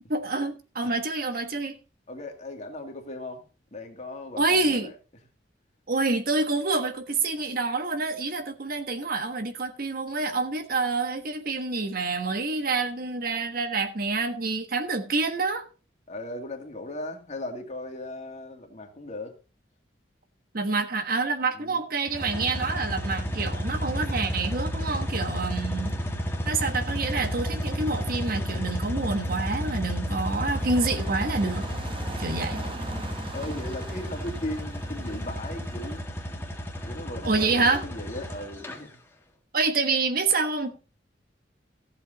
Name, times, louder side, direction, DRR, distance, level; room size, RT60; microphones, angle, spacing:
voice 1, 0.1-1.8 4.4-4.9 5.9-15.6 20.5-26.0 26.5-31.7 32.2-32.6 37.2-37.8 39.5-40.8, right 3 dB, 55° right, 1.3 m, -27 dB
voice 2, 2.1-3.4 3.7-4.9 16.1-19.4 21.5-21.8 32.3-32.8 33.3-36.0 36.8-39.0, left 1 dB, 40° left, 2.3 m, -37 dB
sound 1, 22.1-38.8, equal, 15° left, 1.9 m, -32 dB
sound 2, 30.4-36.0, right 2 dB, 30° right, 0.9 m, -41 dB
14.5 x 7.8 x 4.0 m
head